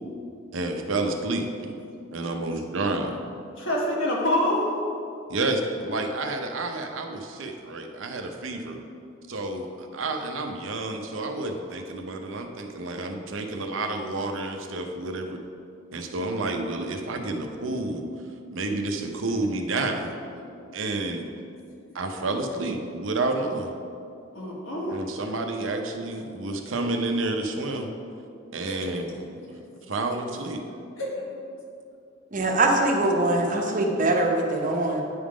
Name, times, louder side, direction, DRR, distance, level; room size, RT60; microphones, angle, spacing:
voice 1, 0.5-1.8 2.1-3.2 5.3-8.8 9.3-15.4 15.9-18.0 18.5-20.1 20.7-21.3 21.9-23.7 24.9-27.9 28.5-29.6 29.9-30.6, right 2 dB, 75° right, 4 dB, 0.7 m, -30 dB
voice 2, 3.5-4.7 24.3-25.0 28.7-29.0 31.0-31.1, left 1 dB, 80° left, -4 dB, 1.7 m, -26 dB
voice 3, 32.3-35.0, right 2 dB, 40° right, 1 dB, 0.8 m, -23 dB
9.5 x 3.7 x 4.9 m, 2.5 s
head